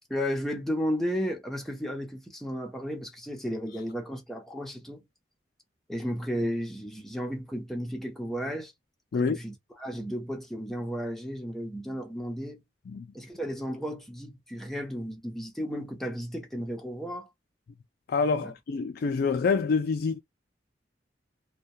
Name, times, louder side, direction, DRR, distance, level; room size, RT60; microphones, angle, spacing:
voice 1, 0.1-5.0 5.9-8.7 9.2-12.6 13.1-17.3 18.4-18.5, equal, ahead, 0.7 m, -33 dB
voice 2, 18.1-20.2, left 4 dB, 60° left, 0.3 m, -26 dB
2.3 x 2.2 x 2.6 m
head